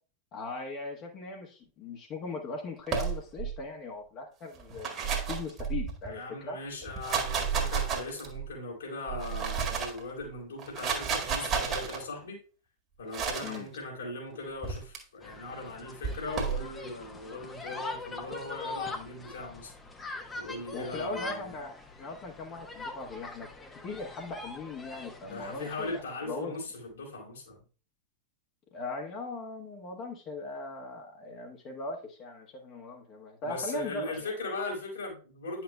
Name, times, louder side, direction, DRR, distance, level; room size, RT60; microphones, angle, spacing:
voice 1, 0.3-6.6 13.4-13.7 20.7-23.5 23.8-26.6 28.7-34.3, left 3 dB, 35° left, 1 dB, 1.4 m, -39 dB
sound 1, 2.9-3.5 4.6-6.1 6.8-8.4 9.1-10.0 10.6-12.0 13.1-13.6 14.6-15.0 16.0-16.6, right 6 dB, 30° right, 1.7 m, -31 dB
voice 2, 6.0-12.4 13.0-19.7 20.3-21.5 25.2-27.6 33.4-35.6, left 2 dB, 70° left, -1 dB, 3.5 m, -39 dB
sound 2, 15.2-26.0, left 3 dB, 15° left, 1.0 m, -43 dB
10.0 x 5.9 x 2.3 m, 0.37 s
figure-of-eight pair, 90°, 0 cm